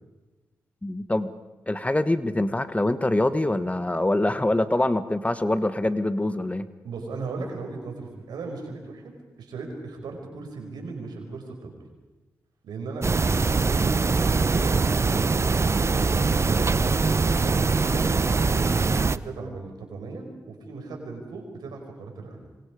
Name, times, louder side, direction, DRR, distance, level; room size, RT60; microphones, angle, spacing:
voice 1, 0.8-1.3 1.7-6.7, left 1 dB, 20° left, 12 dB, 1.5 m, -24 dB
voice 2, 6.8-9.1 9.4-11.7 12.6-17.0 17.4-22.4, right 3 dB, 85° right, 2 dB, 5.1 m, -37 dB
sound 1, 13.0-19.2, right 4 dB, 40° right, 0.8 m, -22 dB
26.5 x 25.0 x 5.1 m, 1.1 s
supercardioid pair, 45°, 7 cm